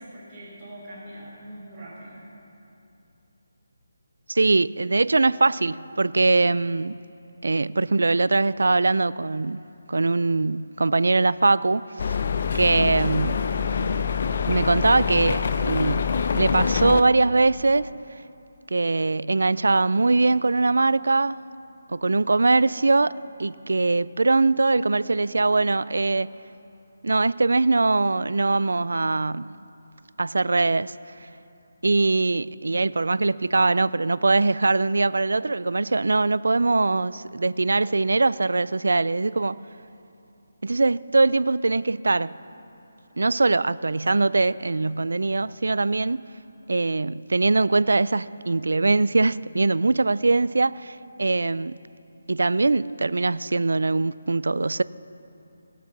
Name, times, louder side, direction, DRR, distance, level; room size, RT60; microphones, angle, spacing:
voice 1, 0.0-2.2, right 1 dB, 15° right, 4.0 m, -42 dB
voice 2, 4.3-7.0 7.4-9.6 9.9-11.8 12.5-13.5 14.5-17.9 18.7-21.4 21.9-23.1 23.4-26.3 27.0-29.5 30.2-30.9 31.8-39.6 40.6-42.3 43.2-46.2 46.7-51.8 52.3-54.8, right 3 dB, 80° right, 0.3 m, -22 dB
sound 1, 12.0-17.0, left 6 dB, 50° left, 0.6 m, -25 dB
19.0 x 8.3 x 5.9 m
figure-of-eight pair, 160°, 0 cm